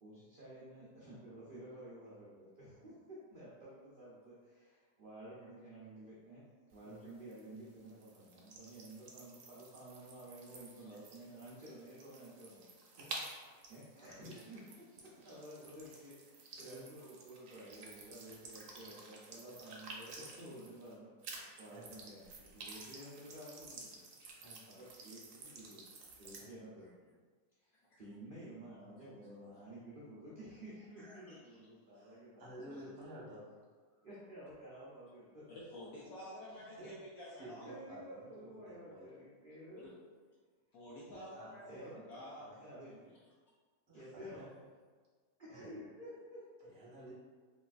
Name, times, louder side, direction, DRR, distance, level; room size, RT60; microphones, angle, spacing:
voice 1, 0.0-6.4 6.7-12.7 13.7-14.8 15.2-24.0 24.3-24.4 24.8-25.8 26.2-27.0 27.6-33.0 34.0-35.4 37.6-39.9 41.7-42.0 42.6-43.1 43.9-44.5 45.5-47.0, right 1 dB, 90° right, -8 dB, 0.4 m, -52 dB
sound 1, 6.7-21.0 21.2-26.5, right 3 dB, 70° right, 0.8 m, -52 dB
voice 2, 13.0-13.4 14.2-14.4 16.7-16.8 21.7-21.9 24.4-24.6 26.4-26.5 31.9-33.4 36.8-36.9 37.3-39.1 41.3-42.0 42.4-42.5 43.9-44.5 45.5-45.7 46.6-47.1, right 1 dB, 25° right, -7 dB, 0.5 m, -53 dB
voice 3, 31.0-31.4 35.5-37.7 39.7-39.9 40.7-42.5 43.9-44.0, left 1 dB, 70° left, -6 dB, 1.0 m, -50 dB
3.9 x 2.3 x 2.3 m, 1.5 s
omnidirectional pair, 1.7 m